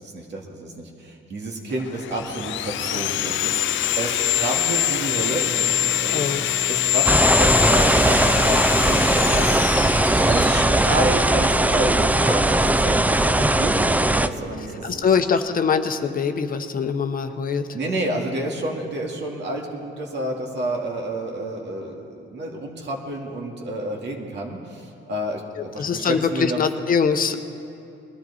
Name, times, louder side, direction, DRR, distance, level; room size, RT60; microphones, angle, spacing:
voice 1, 0.0-14.8 17.7-26.6, right 1 dB, 60° right, 0 dB, 2.3 m, -30 dB
Sawing, 1.8-11.7, left 14 dB, 75° left, 0.4 m, -24 dB
Piano, 2.1-15.0, right 2 dB, 30° right, 1.2 m, -38 dB
voice 2, 6.1-6.4 13.4-13.5 14.8-17.7 25.6-27.4, left 6 dB, 45° left, 7 dB, 0.8 m, -23 dB
sound 1, 7.1-14.3, right 1 dB, 10° right, 0.4 m, -19 dB
20.5 x 12.0 x 4.2 m, 2.6 s
cardioid pair, 90°, 20 cm